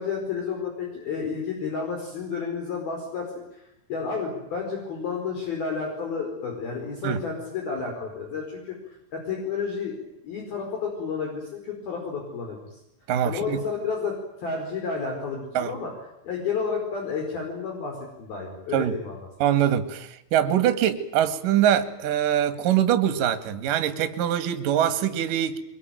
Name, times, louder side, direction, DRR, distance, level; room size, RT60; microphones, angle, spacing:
voice 1, 0.0-3.6 3.9-8.8 9.1-10.0 10.2-12.6 13.2-15.9 16.2-19.2, left 5 dB, 50° left, 6.5 m, -31 dB
voice 2, 13.1-13.6 15.5-15.7 18.7-19.0 19.4-25.6, right 10 dB, 55° right, 2.8 m, -23 dB
25.0 x 23.0 x 9.3 m
omnidirectional pair, 5.8 m